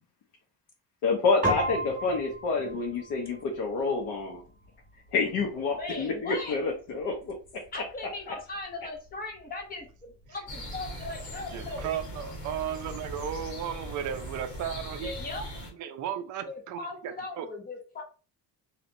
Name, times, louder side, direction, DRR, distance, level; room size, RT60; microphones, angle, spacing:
voice 1, 1.0-4.4 5.1-7.3 8.3-8.4, left 4 dB, 60° left, 0 dB, 0.8 m, -28 dB
Piano, 1.4-11.0, right 1 dB, 20° right, 1.3 m, -39 dB
voice 2, 5.8-6.6 7.7-9.9 10.3-11.9 15.0-15.4 16.5-18.0, left 2 dB, 20° left, 2 dB, 0.6 m, -38 dB
sound 1, 10.5-15.7, equal, 40° left, 1.2 m, -40 dB
voice 3, 11.5-15.1 15.7-17.5, right 9 dB, 45° right, 8 dB, 0.4 m, -35 dB
3.1 x 2.9 x 2.5 m, 0.37 s
cardioid pair, 175°, 42 cm